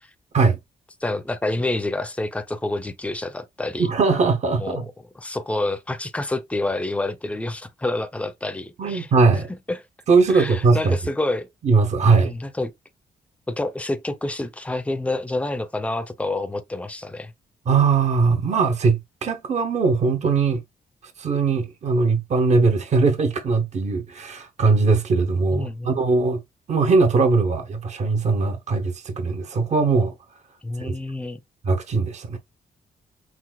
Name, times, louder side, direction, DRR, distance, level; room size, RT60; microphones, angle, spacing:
voice 1, 1.0-3.9 4.6-4.8 5.2-9.1 9.7-9.8 10.3-11.5 12.1-12.7 13.5-17.3 25.5-26.0 30.6-31.4, left 2 dB, 10° left, 0.5 m, -28 dB
voice 2, 3.8-4.9 8.8-9.5 10.1-11.0 11.6-12.3 17.7-20.6 21.2-26.4 26.7-30.1 30.8-30.9 31.6-32.4, right 4 dB, 50° right, 0.8 m, -20 dB
6.0 x 2.5 x 2.2 m
cardioid pair, 115°, 16 cm